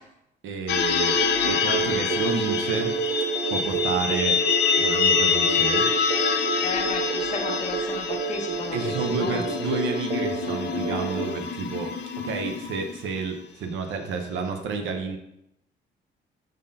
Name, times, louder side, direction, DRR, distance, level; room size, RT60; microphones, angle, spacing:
voice 1, 0.4-2.9 3.5-4.4 4.8-5.8 8.7-15.2, right 4 dB, 80° right, 5 dB, 0.7 m, -30 dB
sound 1, 0.7-13.2, left 7 dB, 60° left, 0.4 m, -26 dB
sound 2, 1.0-11.3, right 6 dB, 35° right, 0.6 m, -30 dB
voice 2, 6.6-9.4, left 4 dB, 35° left, 3 dB, 0.8 m, -33 dB
5.2 x 3.7 x 2.6 m, 0.81 s
cardioid pair, 90°, 20 cm